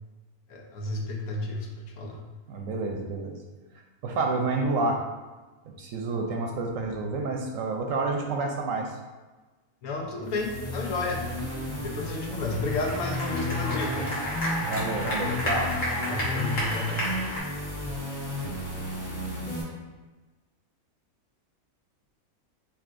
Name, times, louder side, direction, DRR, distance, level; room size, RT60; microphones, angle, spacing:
voice 1, 0.5-2.2 9.8-11.3 11.7-14.1 16.1-17.0, left 2 dB, 75° left, 0 dB, 1.2 m, -32 dB
voice 2, 2.5-3.4 4.0-5.0 5.8-8.9 14.7-15.7, right 3 dB, 70° right, 2 dB, 0.9 m, -29 dB
sound 1, 10.2-19.6, left 1 dB, 35° left, 1.4 m, -33 dB
sound 2, 12.5-17.4, equal, 60° left, 1.6 m, -31 dB
6.9 x 2.8 x 2.5 m, 1.2 s
omnidirectional pair, 1.6 m